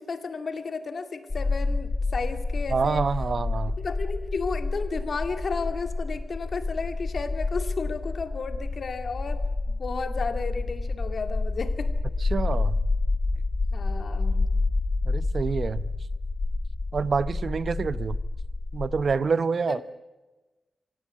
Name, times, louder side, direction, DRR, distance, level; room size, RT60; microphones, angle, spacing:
voice 1, 0.0-3.1 3.8-9.4 9.8-11.9 13.7-14.4 19.7-19.8, left 4 dB, 55° left, 8 dB, 2.3 m, -33 dB
sound 1, 1.3-19.1, left 3 dB, 30° left, 2.7 m, -29 dB
voice 2, 2.7-3.7 12.2-12.8 15.0-15.8 16.9-18.2 18.7-19.8, right 5 dB, 55° right, 16 dB, 0.8 m, -27 dB
26.5 x 17.0 x 8.5 m, 1.2 s
wide cardioid pair, 130°, 0 cm